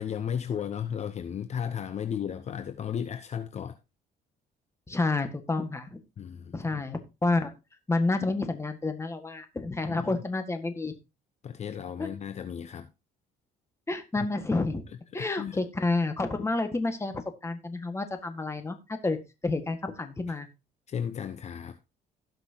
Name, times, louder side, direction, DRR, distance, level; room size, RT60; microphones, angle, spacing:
voice 1, 0.0-3.8 6.2-6.9 9.8-10.2 11.4-12.9 15.2-15.6 20.3-20.4 20.9-21.8, left 8 dB, 40° left, 0.8 m, -34 dB
voice 2, 4.9-6.0 6.5-7.5 7.9-10.9 12.0-12.1 13.9-14.8 15.1-19.2 19.4-20.5, left 3 dB, 15° left, 1.7 m, -29 dB
16.5 x 6.0 x 2.8 m
cardioid pair, 110°, 17 cm